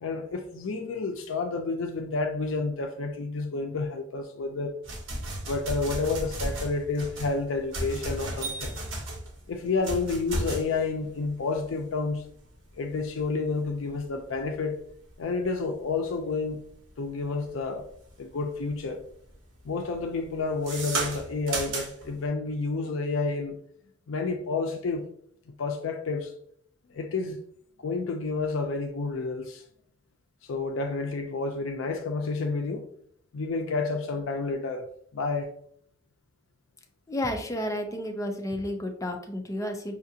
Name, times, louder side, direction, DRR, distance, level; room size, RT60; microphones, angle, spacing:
voice 1, 0.0-4.8 5.5-8.8 9.5-12.2 12.8-14.8 15.2-16.6 17.0-17.9 18.2-19.0 19.6-23.6 24.1-25.0 25.6-26.3 26.9-27.4 27.8-29.6 30.4-32.8 33.3-34.8 35.1-35.5, left 3 dB, 80° left, 4 dB, 0.4 m, -30 dB
sound 1, 4.8-18.2 18.6-19.0 19.3-22.2, right 2 dB, 85° right, 1.0 m, -35 dB
voice 2, 37.1-40.0, left 1 dB, 15° left, 4 dB, 0.5 m, -31 dB
5.7 x 2.4 x 2.7 m, 0.65 s
head